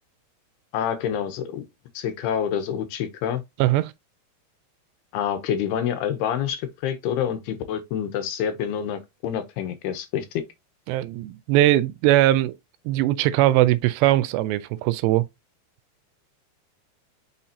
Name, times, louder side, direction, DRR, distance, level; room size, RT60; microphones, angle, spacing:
voice 1, 0.7-1.6 1.9-3.4 5.1-10.4, left 9 dB, 75° left, 2.6 m, -27 dB
voice 2, 3.6-3.9 10.9-12.6 12.9-15.2, right 15 dB, 85° right, 2.6 m, -20 dB
6.8 x 5.8 x 2.8 m
omnidirectional pair, 5.1 m